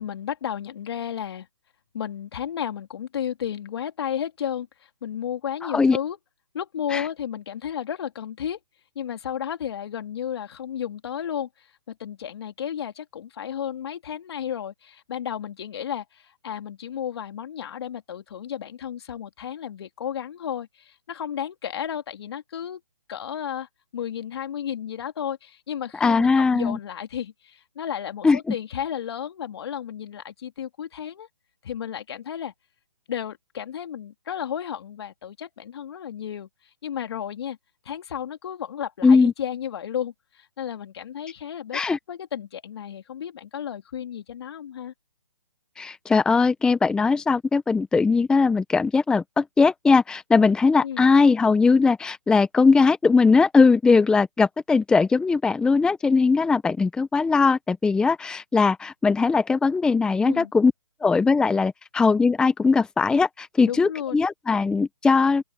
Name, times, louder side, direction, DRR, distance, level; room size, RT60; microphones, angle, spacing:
voice 1, 0.0-1.5 1.9-4.7 5.0-6.2 6.5-8.6 8.9-22.8 23.1-23.7 23.9-31.3 31.6-32.5 33.1-36.5 36.8-37.6 37.8-44.9 50.8-51.1 60.2-60.5 63.6-64.2, left 9 dB, 50° left, 3.3 m, -33 dB
voice 2, 5.6-6.0 6.9-7.0 26.0-26.8 28.2-28.4 39.0-39.3 41.7-42.0 45.8-60.7 61.0-65.4, left 4 dB, 5° left, 0.9 m, -20 dB
open air
hypercardioid pair, 145°, 16 cm